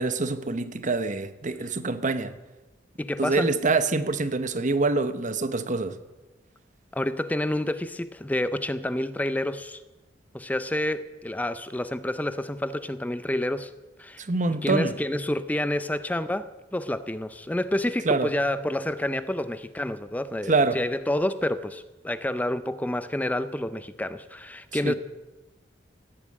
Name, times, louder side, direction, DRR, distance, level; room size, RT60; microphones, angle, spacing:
voice 1, 0.0-2.3 3.2-6.0 14.2-14.9 18.0-18.3 20.5-20.8 24.8-24.9, right 3 dB, 40° right, 1.0 m, -25 dB
voice 2, 3.0-3.5 6.9-9.8 10.3-13.7 14.0-14.3 14.6-24.9, left 1 dB, 10° left, 0.4 m, -29 dB
17.0 x 8.9 x 8.8 m
head